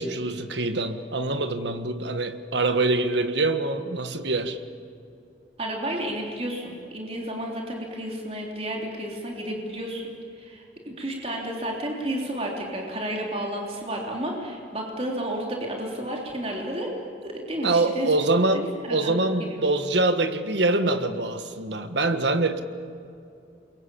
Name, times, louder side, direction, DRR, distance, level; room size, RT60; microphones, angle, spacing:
voice 1, 0.0-4.6 17.6-22.6, right 2 dB, 70° right, 8 dB, 1.6 m, -24 dB
voice 2, 5.6-10.1 10.3-16.9 17.2-18.1 18.5-19.1 19.4-19.7, right 1 dB, 35° right, -1 dB, 3.6 m, -32 dB
29.0 x 23.0 x 8.6 m, 2.6 s
head